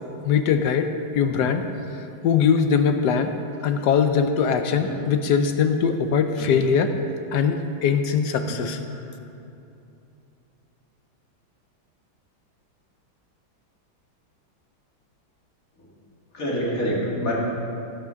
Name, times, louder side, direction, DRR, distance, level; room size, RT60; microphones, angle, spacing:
voice 1, 0.2-1.6 2.2-3.3 3.6-6.9 7.3-8.8, left 6 dB, 70° left, 7 dB, 1.1 m, -21 dB
voice 2, 16.3-17.3, equal, 45° left, -5 dB, 2.6 m, -27 dB
17.0 x 6.0 x 5.7 m, 2.7 s
omnidirectional pair, 2.2 m